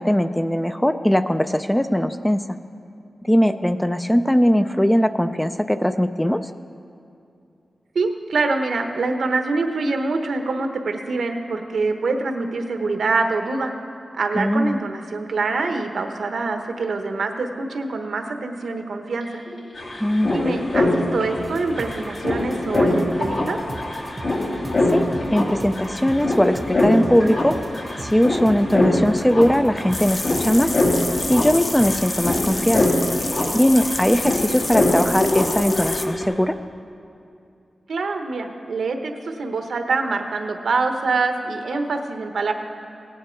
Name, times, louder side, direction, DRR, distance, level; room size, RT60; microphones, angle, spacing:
voice 1, 0.0-2.4 3.2-6.5 14.3-14.8 20.0-20.6 24.9-25.0 25.3-27.6 28.0-30.8 31.3-32.9 33.5-36.6, equal, 10° left, 10 dB, 0.4 m, -20 dB
voice 2, 7.9-13.7 14.1-19.4 20.3-23.6 37.9-42.5, right 3 dB, 85° right, 5 dB, 1.0 m, -25 dB
sound 1, 19.2-19.3 19.5-36.2, left 1 dB, 65° left, 2.3 m, -24 dB
sound 2, 21.4-33.0, right 2 dB, 30° right, 0.8 m, -38 dB
sound 3, 29.9-36.1, left 2 dB, 35° left, 0.8 m, -29 dB
17.0 x 9.6 x 4.5 m, 2.6 s
wide cardioid pair, 110°, 0 cm